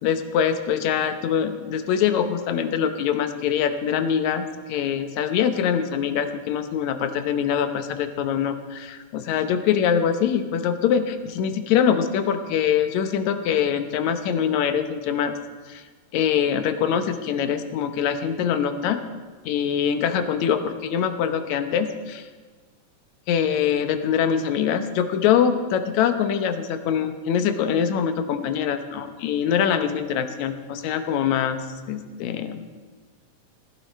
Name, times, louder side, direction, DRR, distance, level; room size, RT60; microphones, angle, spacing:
voice 1, 0.0-15.3 15.7-15.8 16.1-19.0 19.5-22.3 23.3-31.6 31.9-32.7, left 8 dB, 70° left, 9 dB, 2.0 m, -23 dB
15.5 x 15.0 x 4.2 m, 1.4 s
omnidirectional pair, 3.9 m